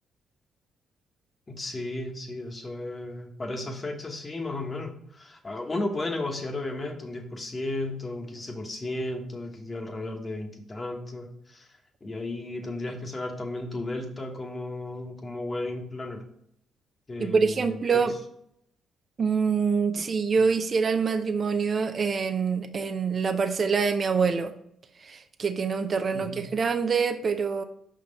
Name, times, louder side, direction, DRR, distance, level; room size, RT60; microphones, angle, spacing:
voice 1, 1.5-16.3 17.1-18.0 20.4-20.5 26.1-26.5, left 2 dB, 30° left, 3 dB, 1.1 m, -34 dB
voice 2, 17.2-18.1 19.2-24.5 25.0-27.6, right 5 dB, 40° right, 8 dB, 0.6 m, -25 dB
5.6 x 3.8 x 5.2 m, 0.73 s
cardioid pair, 90°, 0 cm